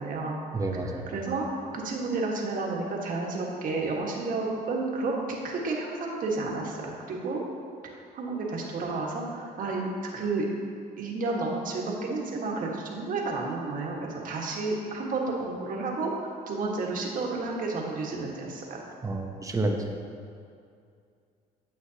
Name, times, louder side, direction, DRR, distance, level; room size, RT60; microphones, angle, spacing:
voice 1, 0.0-0.4 0.9-1.5 1.7-7.4 8.1-9.9 10.1-10.4 11.0-16.1 16.5-18.8, right 3 dB, 55° right, -1 dB, 1.5 m, -31 dB
voice 2, 0.5-1.1 19.0-19.8, right 2 dB, 20° right, 2 dB, 0.9 m, -29 dB
9.6 x 8.0 x 2.9 m, 2.4 s
cardioid pair, 110°, 17 cm